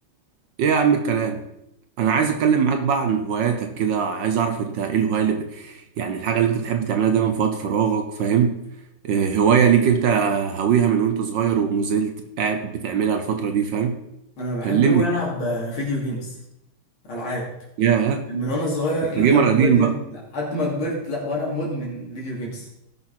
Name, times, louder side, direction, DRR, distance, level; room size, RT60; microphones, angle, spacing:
voice 1, 0.6-1.5 2.0-8.6 9.0-14.0 14.6-15.0 17.8-18.3 19.2-20.0, right 7 dB, 65° right, 7 dB, 1.4 m, -21 dB
voice 2, 14.4-16.4 17.0-17.5 18.3-22.7, left 1 dB, 85° left, -4 dB, 3.7 m, -27 dB
17.5 x 6.1 x 4.3 m, 0.85 s
omnidirectional pair, 2.2 m